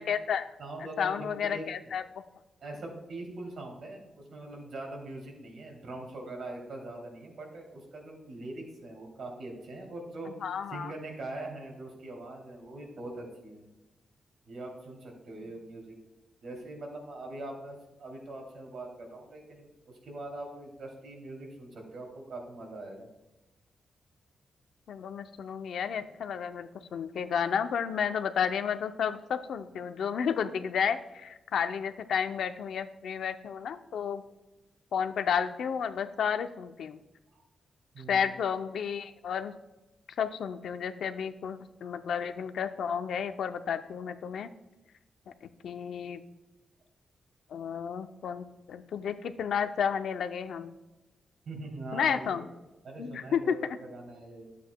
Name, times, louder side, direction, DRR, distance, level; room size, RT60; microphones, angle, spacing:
voice 1, 0.0-0.5 1.0-2.0 10.4-10.9 24.9-34.2 34.9-37.0 38.1-39.5 40.2-44.5 45.4-46.2 47.5-50.8 51.9-52.5 53.0-53.8, left 7 dB, 80° left, 9 dB, 0.5 m, -32 dB
voice 2, 0.6-1.6 2.6-10.3 10.7-13.7 14.4-15.9 16.4-23.1 37.3-37.4 37.9-38.3 51.4-52.4 52.8-54.6, right 2 dB, 60° right, 0 dB, 2.7 m, -42 dB
12.5 x 8.3 x 2.2 m, 0.99 s
wide cardioid pair, 170°, 0 cm